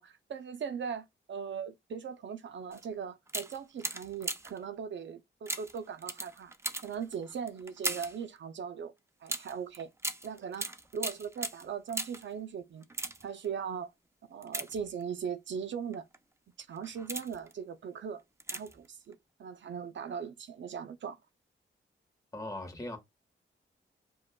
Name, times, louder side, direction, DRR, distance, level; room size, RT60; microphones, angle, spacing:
voice 1, 0.0-6.5 6.8-8.9 9.2-9.9 10.2-12.9 13.2-13.9 14.3-16.1 16.6-18.2 18.5-21.2, right 7 dB, 65° right, 0.5 m, -39 dB
sound 1, 2.7-2.9 3.3-4.6 5.5-8.2 9.3-12.3 12.8-13.5 14.4-15.3 15.9-16.2 16.7-17.5 18.4-18.9 19.1-19.2, right 2 dB, 15° right, 0.4 m, -38 dB
voice 2, 22.3-23.0, left 1 dB, 15° left, 1.4 m, -39 dB
5.0 x 2.3 x 2.2 m
wide cardioid pair, 95°, 20 cm